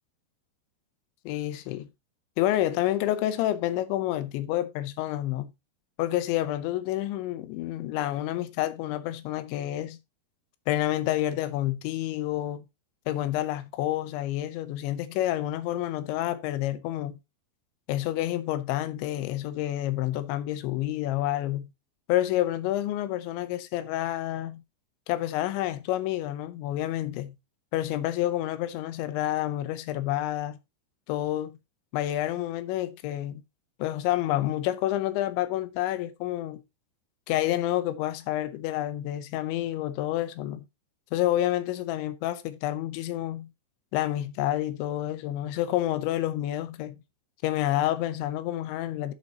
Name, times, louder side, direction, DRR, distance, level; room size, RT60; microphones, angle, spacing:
voice 1, 1.3-1.9 2.4-5.5 6.0-10.0 10.7-12.7 13.1-17.2 17.9-21.7 22.1-24.6 25.1-27.3 27.7-30.6 31.1-31.6 31.9-33.4 33.8-36.6 37.3-40.7 41.1-43.5 43.9-47.0 47.4-49.1, left 14 dB, 90° left, 3.0 m, -29 dB
13.5 x 5.4 x 2.8 m
omnidirectional pair, 5.1 m